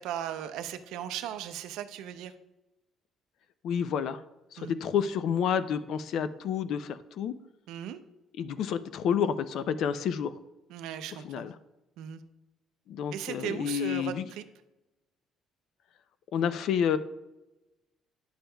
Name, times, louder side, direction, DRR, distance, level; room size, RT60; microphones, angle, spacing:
voice 1, 0.0-2.3 4.6-4.8 7.7-8.0 10.7-11.5 12.0-12.2 13.1-14.4, right 10 dB, 85° right, 10 dB, 0.5 m, -37 dB
voice 2, 3.6-4.2 4.5-7.3 8.4-10.3 11.2-11.5 12.9-14.3 16.3-17.0, left 8 dB, 55° left, 13 dB, 0.4 m, -29 dB
10.0 x 7.1 x 2.2 m, 0.99 s
cardioid pair, 175°, 0 cm